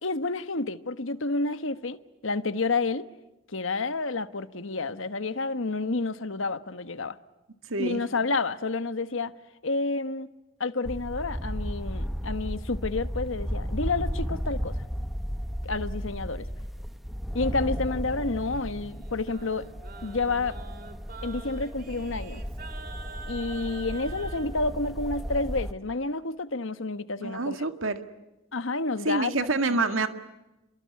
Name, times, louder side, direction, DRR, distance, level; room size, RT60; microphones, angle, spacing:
voice 1, 0.0-3.1 3.5-7.2 7.8-9.3 9.6-10.3 10.6-14.8 15.6-16.5 17.3-19.6 20.0-20.6 21.2-22.4 23.3-27.6 28.5-29.3 29.7-29.8, left 3 dB, 75° left, 1.3 m, -29 dB
voice 2, 7.7-8.1 27.2-28.0 29.0-30.1, right 3 dB, 75° right, 1.9 m, -27 dB
sound 1, 10.9-25.7, equal, ahead, 1.0 m, -34 dB
Singing, 18.4-24.5, right 3 dB, 45° right, 2.8 m, -46 dB
30.0 x 23.5 x 8.5 m
head